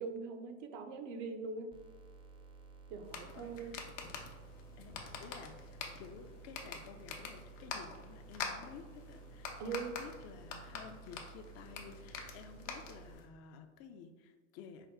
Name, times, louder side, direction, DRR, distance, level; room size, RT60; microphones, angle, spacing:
voice 1, 0.0-1.7 2.9-3.7 9.6-10.0, right 4 dB, 65° right, 6 dB, 0.7 m, -42 dB
sound 1, 1.7-13.1, right 4 dB, 15° right, 0.5 m, -55 dB
sound 2, 3.0-13.3, left 5 dB, 75° left, 0.8 m, -46 dB
voice 2, 3.4-3.7 4.8-4.9 5.2-14.9, left 6 dB, 45° left, 7 dB, 0.4 m, -53 dB
4.5 x 2.2 x 3.5 m, 1.3 s
hypercardioid pair, 95°, 37 cm